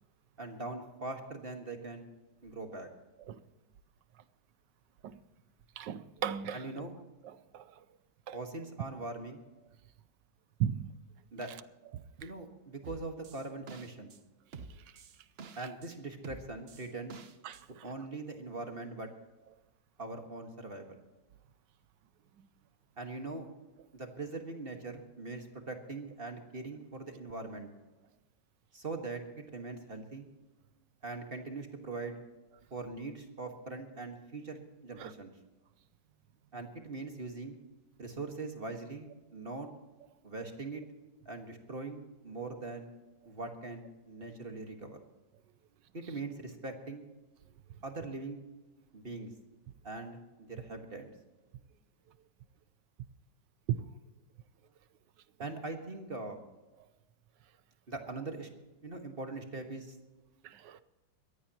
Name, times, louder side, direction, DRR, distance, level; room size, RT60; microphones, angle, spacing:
voice 1, 0.4-2.1 2.4-2.9 6.5-6.9 8.3-9.4 11.3-11.5 12.2-14.1 15.5-17.2 17.8-19.1 20.0-21.0 23.0-23.5 23.9-27.7 28.7-30.3 31.0-32.2 32.7-35.3 36.5-37.6 38.0-39.7 40.2-40.8 41.2-42.9 43.2-45.0 45.9-47.0 47.8-48.4 48.9-49.3 49.8-50.2 50.5-51.1 55.4-56.4 57.9-58.5 58.8-60.0, right 3 dB, 30° right, 1.6 m, -41 dB
voice 2, 5.8-6.6 7.5-7.6 8.3-8.4 10.6-10.8 17.4-17.6 35.0-35.1 53.7-53.9 60.4-60.8, right 10 dB, 75° right, 1.3 m, -35 dB
sound 1, 12.8-14.2 14.5-15.9 16.2-17.6, right 5 dB, 45° right, 0.8 m, -48 dB
22.0 x 15.5 x 2.9 m
omnidirectional pair, 2.1 m